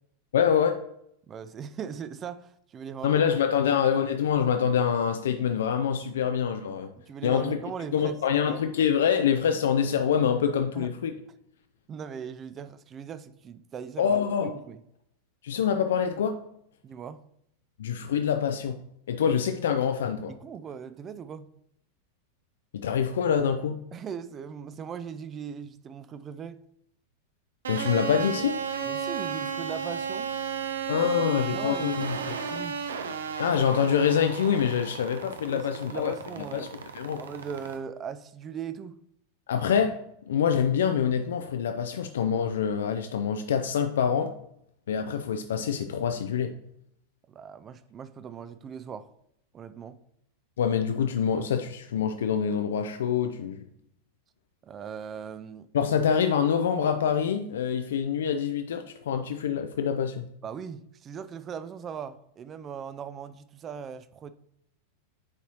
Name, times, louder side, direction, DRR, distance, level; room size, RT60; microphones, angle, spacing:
voice 1, 0.3-0.8 3.0-6.9 7.2-7.6 7.9-11.1 14.0-14.5 15.4-16.4 17.8-20.3 22.7-23.8 27.7-28.6 30.9-32.2 33.4-36.1 36.5-36.7 36.9-37.2 39.5-40.0 40.3-44.3 44.9-46.6 50.6-53.6 55.7-60.3, left 7 dB, 60° left, 0.4 m, -25 dB
voice 2, 1.3-3.2 3.6-3.8 6.2-6.3 7.0-8.6 10.7-10.9 11.9-14.2 14.4-14.8 16.8-17.2 20.4-21.5 23.9-26.6 28.8-30.3 31.0-32.8 35.5-35.6 35.9-36.7 37.2-38.9 47.3-49.1 49.5-50.0 54.6-55.7 60.4-64.3, right 7 dB, 25° right, 0.4 m, -39 dB
sound 1, 27.6-37.8, right 7 dB, 65° right, 0.6 m, -34 dB
9.6 x 4.1 x 2.9 m
figure-of-eight pair, 90°, 0 cm